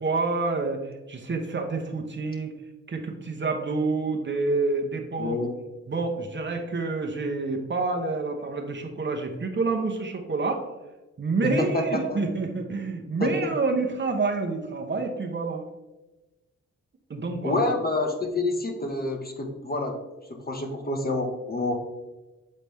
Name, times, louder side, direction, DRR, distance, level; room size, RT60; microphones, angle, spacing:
voice 1, 0.0-2.6 2.9-5.4 5.9-10.7 11.2-15.7 17.1-17.6, right 3 dB, 40° right, 3 dB, 0.9 m, -28 dB
voice 2, 5.1-5.5 11.4-11.8 12.1-12.2 13.2-13.3 17.4-20.0 20.3-21.8, left 2 dB, 30° left, 3 dB, 1.2 m, -27 dB
7.6 x 4.1 x 3.4 m, 1.1 s
cardioid pair, 60°, 29 cm